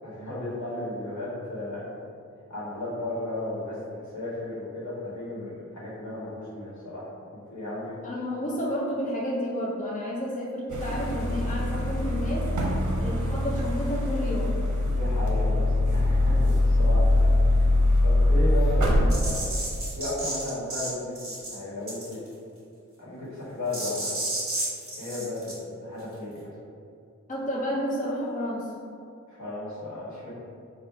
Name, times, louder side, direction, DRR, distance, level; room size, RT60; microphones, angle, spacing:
voice 1, 0.0-1.9 2.5-7.1 7.5-7.9 12.9-13.0 14.8-19.4 19.9-21.2 21.5-22.2 23.0-24.1 24.9-26.5 29.3-30.3, left 1 dB, 65° left, -8 dB, 1.4 m, -34 dB
voice 2, 8.0-12.5 13.0-14.6 27.3-28.7, equal, 25° left, -4 dB, 0.5 m, -31 dB
sound 1, 10.7-19.1, left 1 dB, 75° right, 0.7 m, -23 dB
sound 2, 19.1-20.9 21.2-21.5 21.9-22.3 23.7-25.5, right 2 dB, 45° right, 1.4 m, -32 dB
3.3 x 2.5 x 4.5 m, 2.5 s
wide cardioid pair, 85°, 30 cm